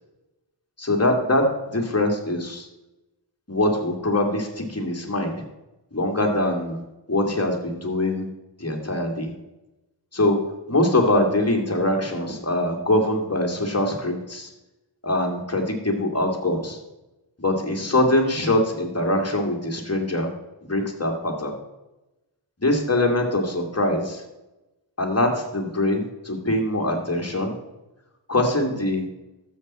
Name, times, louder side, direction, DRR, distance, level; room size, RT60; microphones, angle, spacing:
voice 1, 0.8-2.7 3.5-5.4 5.9-6.8 7.1-8.3 8.6-9.3 10.1-10.4 10.7-14.5 15.0-16.8 17.4-20.3 20.6-21.5 22.6-24.2 25.0-27.5 28.3-29.0, left 1 dB, 35° left, 2 dB, 2.4 m, -23 dB
12.5 x 7.7 x 4.3 m, 1.0 s
wide cardioid pair, 60°, 44 cm